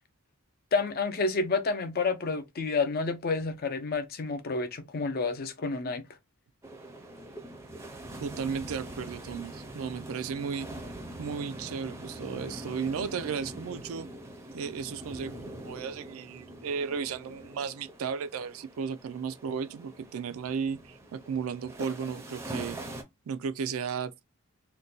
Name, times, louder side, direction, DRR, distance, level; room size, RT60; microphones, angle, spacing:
voice 1, 0.7-6.0, left 4 dB, 45° left, 0.5 m, -29 dB
sound 1, 6.6-23.0, right 1 dB, 15° right, 0.5 m, -43 dB
voice 2, 8.2-10.7 11.2-14.1 14.5-22.8 23.3-24.1, right 6 dB, 75° right, 0.4 m, -34 dB
2.6 x 2.2 x 3.8 m
head